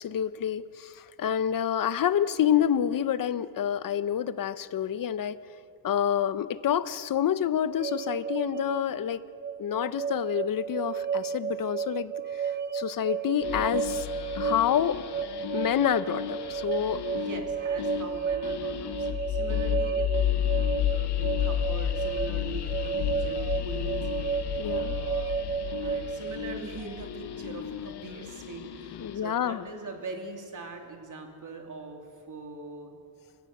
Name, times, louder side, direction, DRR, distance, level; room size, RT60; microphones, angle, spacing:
voice 1, 0.0-5.4 5.8-9.2 9.6-14.1 14.3-15.0 15.5-17.0 24.6-25.0 29.0-29.7, left 9 dB, 55° left, 14 dB, 0.9 m, -28 dB
sound 1, 7.8-26.5, right 7 dB, 25° right, 0.8 m, -33 dB
sound 2, 13.4-29.3, left 11 dB, 80° left, 1.2 m, -32 dB
voice 2, 17.1-20.6 20.9-24.1 24.6-33.0, right 3 dB, 50° right, 3 dB, 3.0 m, -42 dB
28.0 x 16.0 x 6.7 m, 2.5 s
cardioid pair, 120°, 40 cm